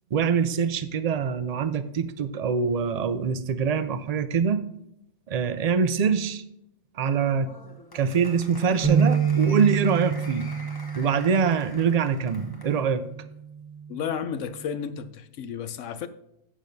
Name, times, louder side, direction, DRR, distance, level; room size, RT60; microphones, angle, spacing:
voice 1, 0.1-4.6 5.3-6.4 6.9-7.5 7.9-10.5 10.9-13.0, right 6 dB, 60° right, 0.4 m, -24 dB
Applause, 7.0-12.8, left 2 dB, 20° left, 0.9 m, -46 dB
sound 1, 8.8-15.1, right 6 dB, 15° right, 1.2 m, -28 dB
voice 2, 13.9-16.1, left 8 dB, 70° left, 1.0 m, -32 dB
12.5 x 8.4 x 2.7 m
omnidirectional pair, 1.4 m